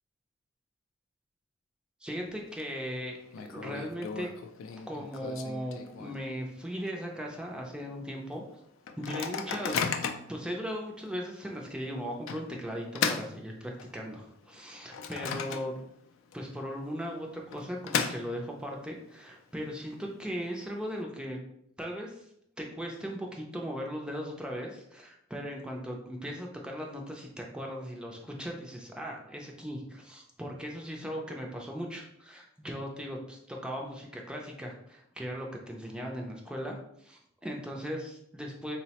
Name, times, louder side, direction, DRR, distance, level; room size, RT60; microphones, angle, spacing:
voice 1, 2.0-3.2 3.5-4.3 4.9-8.4 9.0-10.0 10.3-15.7 16.3-21.4 21.8-22.2 22.6-38.8, equal, 5° right, 0 dB, 0.3 m, -38 dB
Microwave oven, 2.1-2.6 2.9-3.0 3.3-6.4 6.8-6.9 7.2-7.5 8.0-8.1 8.9-10.4 11.0-11.1 12.3-14.1 14.5-16.0 16.3-16.4 17.3-18.7, left 6 dB, 80° left, 0.3 m, -35 dB
3.7 x 2.0 x 2.8 m, 0.74 s
head